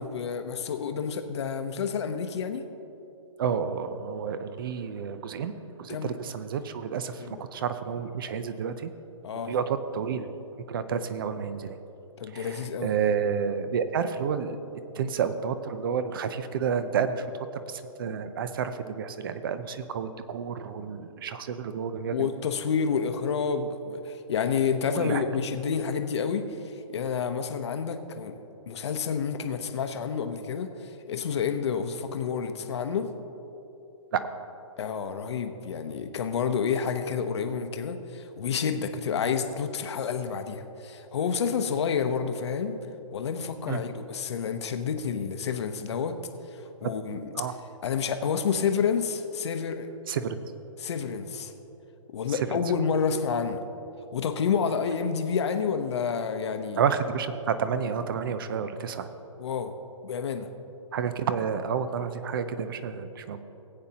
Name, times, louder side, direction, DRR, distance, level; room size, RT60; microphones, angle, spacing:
voice 1, 0.0-2.7 5.9-6.2 7.2-7.4 9.2-9.5 12.2-13.0 22.1-28.4 28.7-33.1 34.8-42.8 43.1-46.2 46.5-47.2 47.8-49.9 50.8-51.5 52.1-53.6 54.1-56.8 59.4-59.7 60.0-60.5, left 6 dB, 55° left, 7 dB, 0.8 m, -29 dB
voice 2, 3.4-7.3 7.5-8.9 9.5-10.3 10.7-11.8 12.3-14.6 14.9-22.3 24.9-25.3 34.1-34.2 43.7-43.8 46.8-46.9 47.3-47.5 50.1-50.4 52.3-52.6 56.8-59.1 60.9-63.4, right 7 dB, 40° right, 11 dB, 0.6 m, -30 dB
18.0 x 8.7 x 2.9 m, 3.0 s
hypercardioid pair, 160°, 17 cm